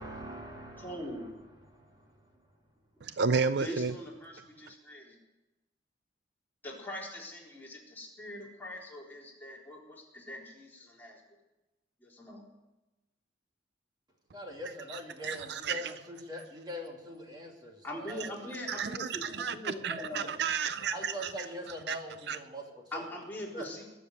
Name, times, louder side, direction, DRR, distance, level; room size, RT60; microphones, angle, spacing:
voice 1, 0.0-1.3 1.6-2.4 14.3-19.0 20.0-20.1 20.9-23.0 23.5-23.8, equal, 25° right, 2.6 m, -43 dB
voice 2, 0.8-1.3 3.5-5.2 6.6-11.2 12.0-12.4 17.8-20.3 22.9-23.8, left 1 dB, 10° left, 3.9 m, -42 dB
voice 3, 3.0-3.9 14.9-15.9 18.2-18.3 18.7-21.3 21.9-22.0 22.3-22.4, right 5 dB, 60° right, 0.5 m, -32 dB
21.0 x 7.2 x 9.4 m
head